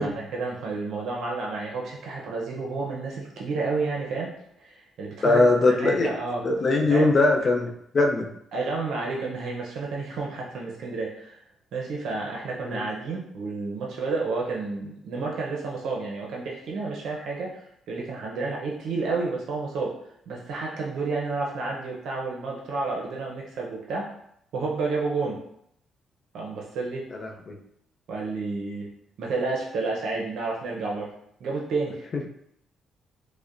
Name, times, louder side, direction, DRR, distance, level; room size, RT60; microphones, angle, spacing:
voice 1, 0.0-4.3 4.6-5.5 5.8-6.4 6.9-7.1 8.5-11.4 11.7-19.9 20.3-24.1 24.5-25.4 26.3-27.1 28.1-28.9 29.2-31.1 31.4-32.1, right 3 dB, 75° right, -2 dB, 0.6 m, -30 dB
voice 2, 5.2-6.1 6.4-8.3 12.6-12.9 27.1-27.6, left 2 dB, 45° left, 1 dB, 0.5 m, -21 dB
5.0 x 2.1 x 2.5 m, 0.73 s
cardioid pair, 90°, 0 cm